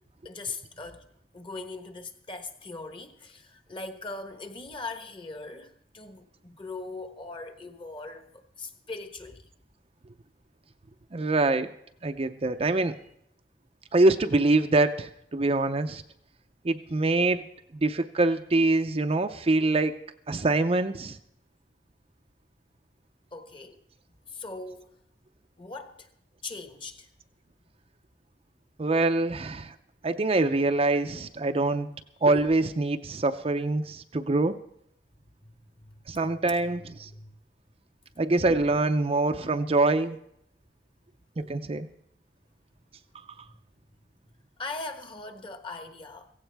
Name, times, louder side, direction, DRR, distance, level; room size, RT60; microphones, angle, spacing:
voice 1, 0.2-1.0 1.3-8.3 8.6-9.4 23.3-23.8 24.3-24.9 25.6-26.1 26.4-27.1 35.4-36.0 37.1-37.3 44.6-46.3, left 3 dB, 30° left, 1.2 m, -40 dB
voice 2, 11.1-11.7 12.0-13.0 13.9-16.0 16.6-17.4 17.7-20.0 20.3-21.2 28.8-29.7 30.0-31.9 32.2-34.5 36.1-37.1 38.2-40.2 41.4-41.9, right 2 dB, 35° right, 0.5 m, -24 dB
16.0 x 16.0 x 3.4 m
head